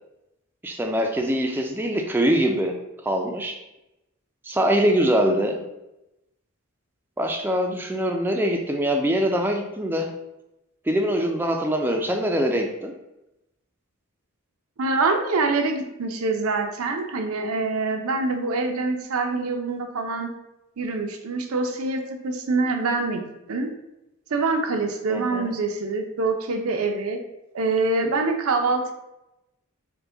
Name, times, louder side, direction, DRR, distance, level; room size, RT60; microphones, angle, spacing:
voice 1, 0.6-2.8 3.0-3.6 4.4-5.6 7.2-10.1 10.9-12.9 25.1-25.5, equal, 10° right, 2 dB, 0.3 m, -23 dB
voice 2, 14.8-20.3 20.8-23.2 23.5-23.7 24.3-27.2 27.5-28.9, right 3 dB, 80° right, 4 dB, 0.6 m, -25 dB
4.6 x 2.2 x 3.7 m, 0.91 s
head